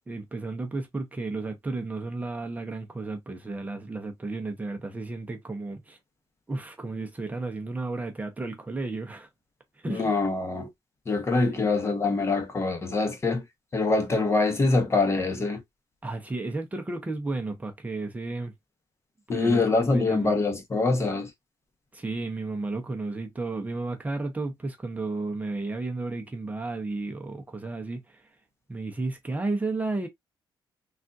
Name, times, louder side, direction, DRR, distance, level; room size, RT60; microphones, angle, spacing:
voice 1, 0.1-6.0 6.5-9.3 9.7-10.1 11.5-11.8 16.0-18.5 19.3-20.3 21.9-28.3 28.7-30.1, right 3 dB, 15° right, 0.7 m, -33 dB
voice 2, 9.9-10.7 11.1-13.4 13.7-15.6 19.3-21.3, left 3 dB, 30° left, 0.9 m, -24 dB
3.5 x 2.4 x 2.6 m
cardioid pair, 120°, 9 cm